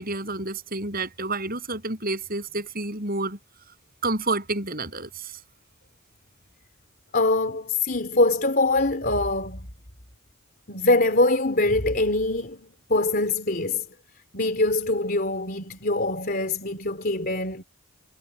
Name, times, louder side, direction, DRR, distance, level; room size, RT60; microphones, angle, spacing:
voice 1, 0.0-3.4 4.0-5.1, right 2 dB, 45° right, 7.7 m, -29 dB
voice 2, 7.1-9.7 10.7-13.9 14.3-17.6, left 2 dB, 45° left, 3.6 m, -23 dB
head